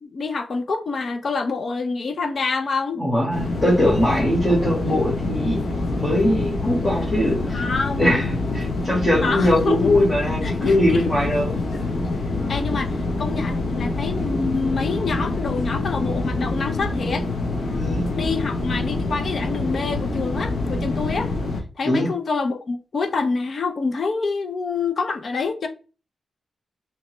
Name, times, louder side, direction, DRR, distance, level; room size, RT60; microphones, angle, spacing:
voice 1, 0.0-3.0 7.5-8.1 9.2-9.9 10.4-11.1 11.7-11.8 12.5-17.2 17.9-21.3 21.8-25.7, left 4 dB, 50° left, 0.5 m, -26 dB
voice 2, 2.9-5.6 6.0-7.6 8.0-11.6 17.7-18.1 21.8-22.1, left 1 dB, 10° left, 1.1 m, -21 dB
sound 1, 3.3-21.6, left 2 dB, 75° left, 0.8 m, -26 dB
3.2 x 2.9 x 3.0 m
wide cardioid pair, 160°, 0 cm